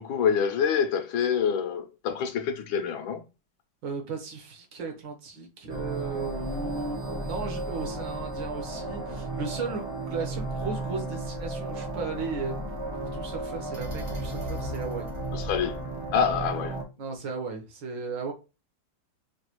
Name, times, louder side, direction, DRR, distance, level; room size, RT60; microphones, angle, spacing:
voice 1, 0.0-3.2 15.3-15.8 16.1-16.8, left 7 dB, 80° left, 1.5 m, -26 dB
voice 2, 3.8-15.1 15.5-15.7 17.0-18.3, right 4 dB, 65° right, 1.8 m, -35 dB
sound 1, 5.7-16.8, right 2 dB, 40° right, 0.4 m, -34 dB
5.8 x 2.4 x 3.0 m
omnidirectional pair, 2.1 m